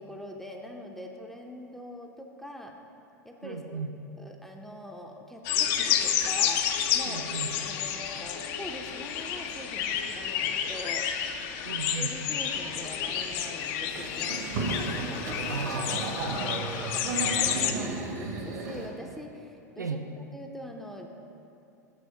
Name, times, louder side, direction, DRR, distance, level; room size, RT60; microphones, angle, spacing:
voice 1, 0.0-2.8 3.2-3.8 4.2-6.7 6.9-7.3 7.6-11.1 11.9-14.5 14.8-15.7 16.3-21.1, equal, 5° left, 1 dB, 0.6 m, -43 dB
voice 2, 3.4-3.9 7.0-7.6 11.6-12.1 15.5-16.8 19.8-20.0, right 4 dB, 90° right, 5 dB, 0.4 m, -36 dB
sound 1, 5.4-17.7, left 9 dB, 50° left, 0.5 m, -30 dB
Boat Water vehicle, 13.9-18.9, right 3 dB, 60° right, 1.4 m, -33 dB
6.7 x 6.4 x 4.5 m, 2.7 s
figure-of-eight pair, 85°, 9 cm